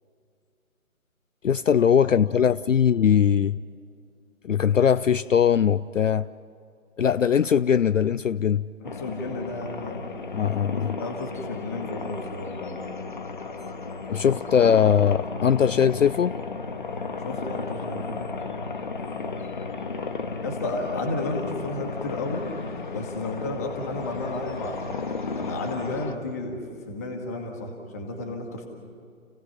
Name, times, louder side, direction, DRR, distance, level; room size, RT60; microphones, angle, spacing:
voice 1, 1.4-3.6 4.4-6.3 7.0-8.7 10.3-11.0 14.1-16.4, left 8 dB, 60° left, 0.5 m, -20 dB
sound 1, 8.8-26.2, left 4 dB, 35° left, 1.1 m, -34 dB
voice 2, 8.8-10.0 11.0-13.1 17.2-18.3 20.4-22.5 22.9-24.9 25.3-28.7, left 2 dB, 10° left, 1.2 m, -32 dB
29.5 x 16.5 x 5.8 m
figure-of-eight pair, 155°, 43 cm